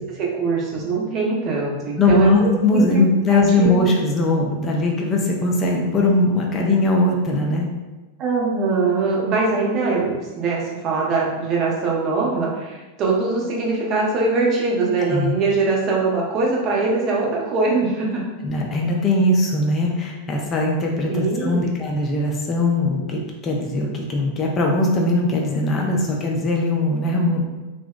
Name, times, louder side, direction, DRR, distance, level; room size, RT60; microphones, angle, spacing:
voice 1, 0.1-2.9 3.3-3.9 8.2-18.2 21.1-21.8, right 3 dB, 35° right, -3 dB, 0.5 m, -22 dB
voice 2, 2.0-7.7 15.1-15.3 18.4-27.4, left 2 dB, 25° left, -1 dB, 0.4 m, -20 dB
2.6 x 2.1 x 2.2 m, 1.2 s
figure-of-eight pair, 90°, 0 cm